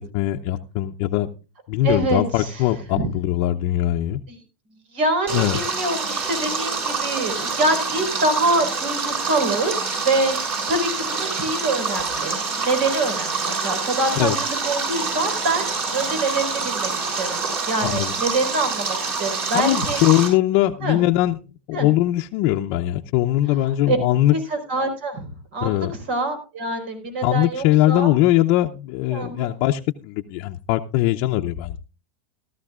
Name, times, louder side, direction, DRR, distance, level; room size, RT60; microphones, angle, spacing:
voice 1, 0.1-1.3 1.7-4.2 5.3-5.6 14.2-14.4 17.8-18.1 19.5-21.4 21.7-24.3 25.6-25.9 27.2-31.8, left 15 dB, 55° left, 0.7 m, -21 dB
voice 2, 1.8-2.6 2.9-3.1 4.9-9.7 10.0-14.3 14.6-20.0 20.8-21.0 21.7-21.9 23.9-24.0 24.3-25.3 25.5-28.1 29.1-29.5, right 2 dB, 75° right, 4.6 m, -25 dB
Stream, 5.3-20.3, right 4 dB, 40° right, 6.7 m, -26 dB
17.0 x 13.0 x 2.4 m
supercardioid pair, 120°, 6 cm